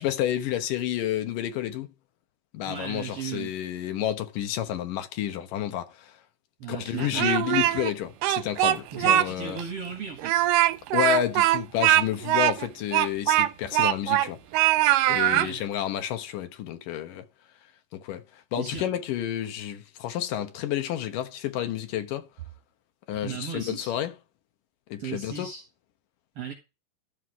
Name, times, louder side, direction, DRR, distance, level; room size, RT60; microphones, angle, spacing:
voice 1, 0.0-1.9 2.5-6.1 6.7-9.6 10.9-14.4 15.1-17.3 17.9-22.3 23.1-24.1 24.9-25.5, left 11 dB, 75° left, 2.8 m, -30 dB
voice 2, 2.6-3.6 6.6-7.4 8.9-10.5 15.3-15.6 18.6-18.9 23.1-23.9 25.0-25.6 26.4-26.5, right 7 dB, 50° right, 2.5 m, -36 dB
Speech, 7.0-7.9 8.2-9.3 9.6-9.7 10.2-14.3 14.5-15.5, right 14 dB, 80° right, 2.3 m, -22 dB
13.0 x 5.8 x 4.7 m
omnidirectional pair, 3.9 m